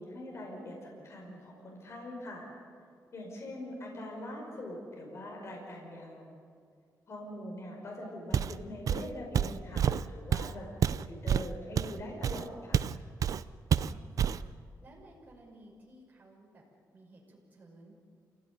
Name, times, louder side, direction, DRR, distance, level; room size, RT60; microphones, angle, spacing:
voice 1, 0.0-2.5 3.1-6.3 7.1-12.8, left 1 dB, 45° left, -1 dB, 5.4 m, -43 dB
voice 2, 3.2-3.6 13.7-14.5 14.8-16.6 16.9-18.0, right 1 dB, 25° right, -3 dB, 5.9 m, -56 dB
Walk footsteps, 8.3-8.6 8.9-13.0 13.2-13.4 13.7-14.4, right 8 dB, 55° right, 0.6 m, -28 dB
27.5 x 16.5 x 9.7 m, 2.3 s
wide cardioid pair, 145°, 7 cm